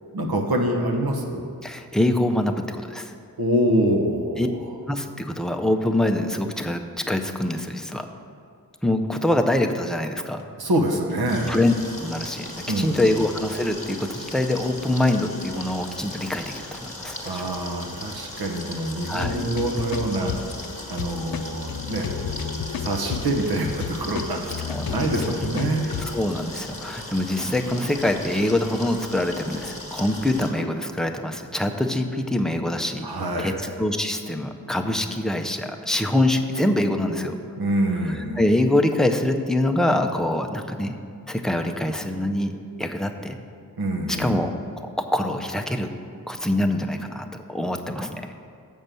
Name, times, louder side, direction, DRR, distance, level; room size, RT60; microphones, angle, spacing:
voice 1, 0.1-1.4 3.4-4.6 10.6-11.6 12.7-13.1 17.2-20.3 20.9-22.1 22.8-25.9 33.0-33.6 37.6-38.4 43.8-44.4 48.0-48.1, right 1 dB, 80° right, 2 dB, 1.1 m, -25 dB
voice 2, 1.6-3.2 4.4-4.5 4.9-6.8 7.1-8.1 8.8-10.4 11.5-11.7 12.0-17.5 19.1-19.4 24.7-25.7 26.0-33.1 33.4-37.4 38.1-41.0 41.3-43.4 44.1-45.9 46.3-48.3, left 1 dB, ahead, 4 dB, 0.4 m, -24 dB
sound 1, 10.7-11.5 11.8-11.9 12.5-12.6 12.9-13.0 13.4-14.3 15.0-15.4 15.6-15.7 16.4-16.8 17.1-17.2 17.5-17.6 18.2-18.3 18.5-18.6 19.1-26.1, left 7 dB, 70° left, 0.5 m, -33 dB
sound 2, 11.3-30.5, left 2 dB, 20° left, 1.3 m, -38 dB
7.5 x 5.4 x 6.8 m, 2.4 s
wide cardioid pair, 125°, 37 cm